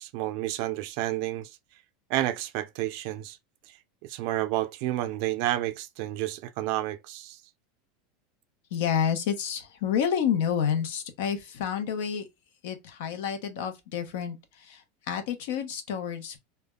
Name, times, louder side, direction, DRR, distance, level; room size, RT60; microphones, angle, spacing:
voice 1, 0.0-1.6 2.1-3.4 3.7-3.8 4.0-7.4, right 15 dB, 55° right, 0.4 m, -30 dB
voice 2, 8.7-12.3 12.6-14.8 15.1-16.4, left 8 dB, 70° left, 0.8 m, -29 dB
3.3 x 2.2 x 2.2 m
supercardioid pair, 150°, 0 cm